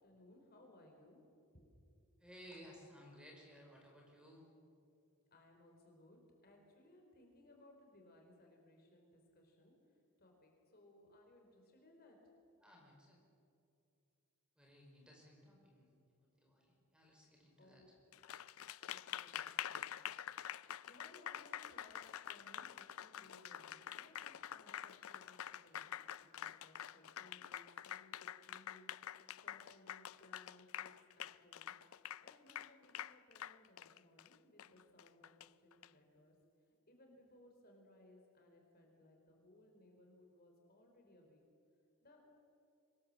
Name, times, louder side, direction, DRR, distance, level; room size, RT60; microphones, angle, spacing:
voice 1, 0.0-1.8 5.3-12.2 17.6-17.9 18.8-20.1 20.6-26.0 26.3-28.9 29.3-31.7 32.2-35.3 35.6-36.3 36.9-41.4 42.0-42.2, left 1 dB, 45° left, 1 dB, 4.0 m, -64 dB
voice 2, 2.2-4.5 12.6-13.2 14.5-17.8, equal, 5° right, -1 dB, 4.9 m, -59 dB
Applause, 18.1-35.9, left 10 dB, 70° left, 0.5 m, -47 dB
24.5 x 20.5 x 7.6 m, 2.6 s
head